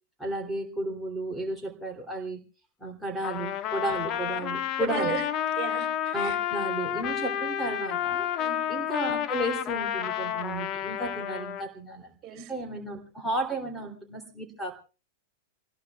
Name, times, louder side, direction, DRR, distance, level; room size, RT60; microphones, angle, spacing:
voice 1, 0.2-2.4 2.8-5.2 6.1-8.3 8.7-14.7, right 1 dB, ahead, -1 dB, 3.0 m, -33 dB
Trumpet, 3.2-11.7, left 10 dB, 40° left, 1.4 m, -30 dB
voice 2, 4.8-5.2 5.6-6.4 8.4-8.6 12.2-12.5, right 14 dB, 35° right, 5 dB, 3.7 m, -34 dB
28.5 x 20.0 x 2.4 m, 0.35 s
figure-of-eight pair, 100°, 0 cm